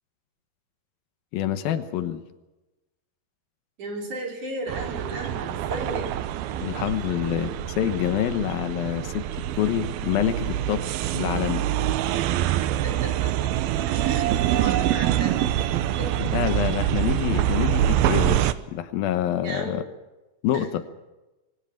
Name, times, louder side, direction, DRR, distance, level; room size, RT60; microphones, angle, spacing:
voice 1, 1.3-2.2 6.6-11.6 16.2-19.8 20.4-20.8, left 11 dB, 85° left, 11 dB, 2.9 m, -27 dB
voice 2, 3.8-6.1 12.6-13.5 13.9-16.5 19.4-19.8 20.5-20.7, right 1 dB, 55° right, 0 dB, 6.6 m, -35 dB
sound 1, 4.7-18.5, right 12 dB, 85° right, 2.8 m, -25 dB
23.0 x 18.5 x 7.3 m, 1.1 s
omnidirectional pair, 4.2 m